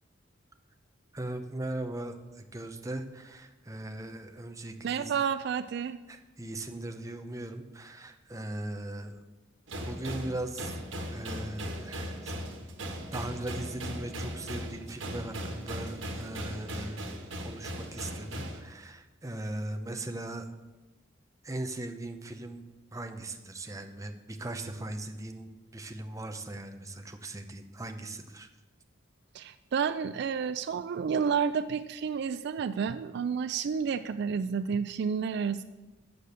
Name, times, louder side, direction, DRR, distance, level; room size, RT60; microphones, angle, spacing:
voice 1, 1.1-5.1 6.1-9.2 9.8-10.7 11.1-12.3 13.1-17.0 17.4-20.5 21.4-22.6 22.9-28.5, right 1 dB, 15° right, 6 dB, 0.7 m, -39 dB
voice 2, 4.8-6.0 29.3-35.6, right 6 dB, 60° right, 12 dB, 0.3 m, -30 dB
sound 1, 9.7-18.6, equal, 80° right, 1.4 m, -38 dB
7.5 x 6.6 x 6.7 m, 1.1 s
head